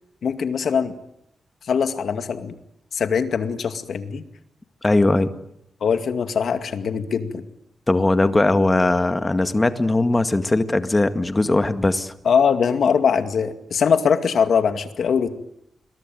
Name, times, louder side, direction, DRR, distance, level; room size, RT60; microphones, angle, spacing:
voice 1, 0.2-0.9 1.7-2.6 2.9-4.2 5.8-7.4 12.2-15.3, left 6 dB, 75° left, 9 dB, 2.2 m, -21 dB
voice 2, 4.8-5.3 7.9-12.1, left 2 dB, 20° left, 10 dB, 1.9 m, -19 dB
28.0 x 22.0 x 9.3 m, 0.77 s
wide cardioid pair, 105°, 0 cm